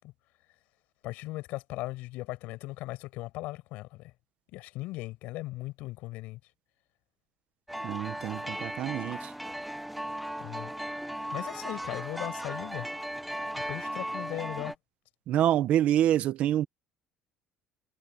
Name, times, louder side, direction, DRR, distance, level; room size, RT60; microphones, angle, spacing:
voice 1, 1.0-4.1 4.5-6.4 10.4-10.7 11.0-11.1 11.3-12.9 13.5-14.7, left 19 dB, 70° left, 5.7 m, -38 dB
sound 1, 7.7-14.7, equal, ahead, 0.9 m, -37 dB
voice 2, 7.8-9.3 15.3-16.7, right 11 dB, 50° right, 1.2 m, -26 dB
cardioid pair, 155°, 3 cm